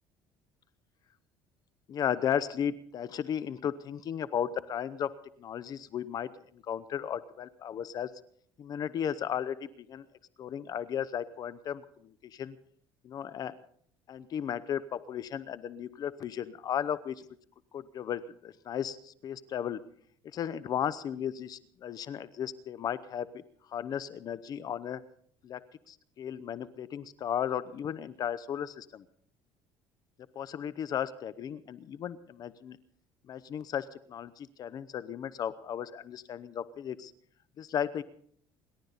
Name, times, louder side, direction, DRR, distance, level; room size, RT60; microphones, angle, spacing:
voice 1, 1.9-5.1 5.4-8.1 8.6-10.0 10.4-12.6 13.0-13.6 14.1-17.2 17.7-19.8 20.3-23.4 23.7-25.0 25.4-25.6 25.9-29.0 30.3-32.8 33.3-37.1 37.6-38.0, left 9 dB, 45° left, 15 dB, 0.8 m, -35 dB
29.0 x 12.0 x 4.1 m, 0.62 s
cardioid pair, 115°, 9 cm